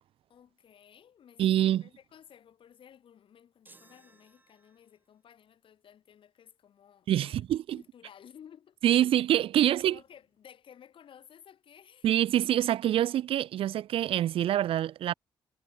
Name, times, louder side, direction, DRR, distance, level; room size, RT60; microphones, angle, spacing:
voice 1, 0.3-7.4 7.7-9.1 9.5-12.1, left 9 dB, 65° left, 3.3 m, -55 dB
voice 2, 1.4-1.8 7.1-7.8 8.8-10.0 12.0-15.1, right 12 dB, 75° right, 0.5 m, -25 dB
sound 1, 3.6-5.1, right 2 dB, 20° right, 7.6 m, -60 dB
cardioid pair, 85°, 9 cm